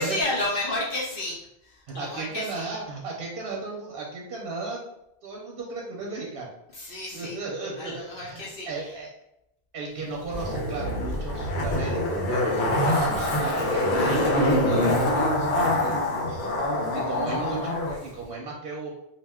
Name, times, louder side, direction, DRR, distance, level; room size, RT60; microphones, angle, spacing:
voice 1, 0.0-1.4 1.6-2.7 6.7-7.4 7.8-8.9 16.3-17.1, left 2 dB, 60° left, -5 dB, 0.8 m, -32 dB
voice 2, 1.9-4.8 5.2-6.5 7.1-9.1 9.7-16.0 16.9-18.9, right 3 dB, 65° right, -2 dB, 0.7 m, -35 dB
Zipper (clothing), 10.3-17.9 18.2-18.3, left 1 dB, 85° left, 0.9 m, -25 dB
2.3 x 2.1 x 3.4 m, 0.83 s
omnidirectional pair, 1.1 m